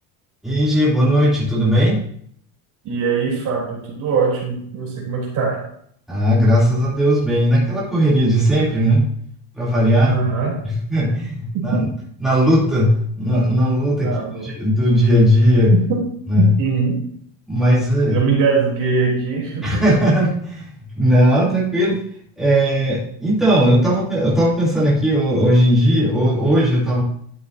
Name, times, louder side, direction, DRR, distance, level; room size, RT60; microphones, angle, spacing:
voice 1, 0.4-2.0 6.1-9.0 9.5-10.1 10.6-11.8 12.2-14.1 14.4-15.7 16.3-16.5 17.5-18.2 19.6-22.0 22.4-27.0, equal, ahead, -8 dB, 2.9 m, -17 dB
voice 2, 2.8-5.7 10.0-10.6 11.5-11.8 14.0-14.5 15.7-16.0 16.4-17.0 18.1-19.8, right 5 dB, 50° right, -2 dB, 3.5 m, -21 dB
12.0 x 6.8 x 2.7 m, 0.63 s
cardioid pair, 155°, 39 cm